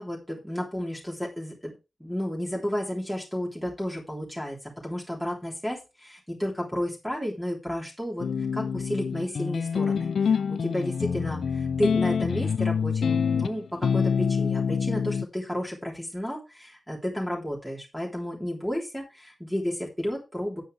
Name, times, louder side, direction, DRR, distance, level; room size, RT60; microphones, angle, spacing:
voice 1, 0.0-1.7 2.0-4.6 4.8-20.6, equal, ahead, -3 dB, 3.4 m, -32 dB
sound 1, 8.2-15.3, left 6 dB, 75° left, 0.4 m, -26 dB
10.0 x 9.3 x 3.4 m, 0.27 s
wide cardioid pair, 175°, 0 cm